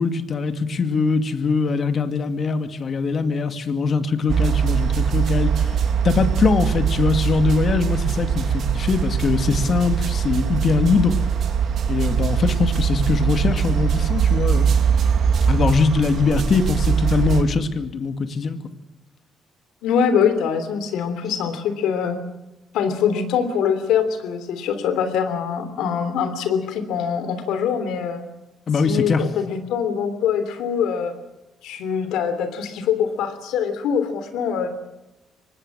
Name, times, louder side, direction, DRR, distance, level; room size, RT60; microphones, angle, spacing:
voice 1, 0.0-5.7 6.0-11.2 11.9-14.7 15.5-18.6 28.7-29.2, left 4 dB, 50° left, 8 dB, 2.3 m, -22 dB
sound 1, 4.3-17.4, right 7 dB, 65° right, 2.5 m, -21 dB
voice 2, 19.8-22.2 22.7-28.2 28.8-31.1 31.6-34.7, left 7 dB, 90° left, 10 dB, 3.3 m, -23 dB
24.5 x 19.5 x 7.6 m, 0.98 s
cardioid pair, 90°, 0 cm